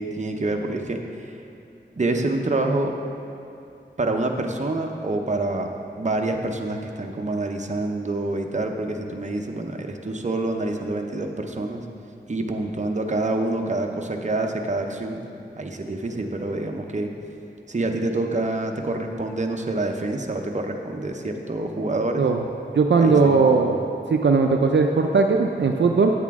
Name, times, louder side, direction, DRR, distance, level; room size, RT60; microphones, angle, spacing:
voice 1, 0.0-1.3 2.0-2.9 4.0-5.7 6.0-11.8 12.3-15.2 15.6-17.1 17.7-22.2 23.0-23.8, right 2 dB, 40° right, 3 dB, 0.7 m, -27 dB
voice 2, 22.7-23.8 24.1-26.1, right 4 dB, 70° right, 3 dB, 0.5 m, -18 dB
9.2 x 8.2 x 3.6 m, 2.6 s
wide cardioid pair, 65°, 19 cm